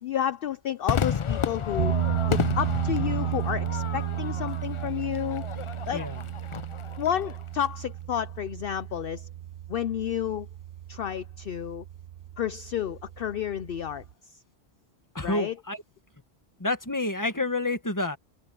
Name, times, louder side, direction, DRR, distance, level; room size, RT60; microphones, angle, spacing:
voice 1, 0.0-1.9 2.3-5.4 5.9-6.0 7.0-9.3 9.7-10.5 10.9-11.8 12.4-14.4 15.2-15.5, left 10 dB, 60° left, 0.8 m, -31 dB
Crowd / Fireworks, 0.9-7.4, left 7 dB, 45° left, 0.4 m, -32 dB
sound 1, 1.8-14.1, right 11 dB, 55° right, 0.7 m, -33 dB
voice 2, 5.9-6.2 15.1-15.8 16.6-18.2, left 2 dB, 15° left, 1.6 m, -29 dB
open air
omnidirectional pair, 1.1 m